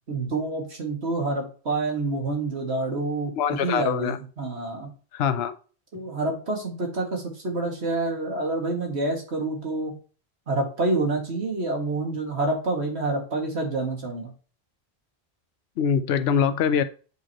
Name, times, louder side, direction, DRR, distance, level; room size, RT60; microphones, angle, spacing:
voice 1, 0.1-4.9 5.9-9.9 10.5-14.3, right 2 dB, 80° right, 2.3 m, -27 dB
voice 2, 3.4-4.2 5.1-5.6 15.8-16.8, left 7 dB, 75° left, 0.9 m, -23 dB
7.9 x 5.0 x 2.9 m
omnidirectional pair, 1.1 m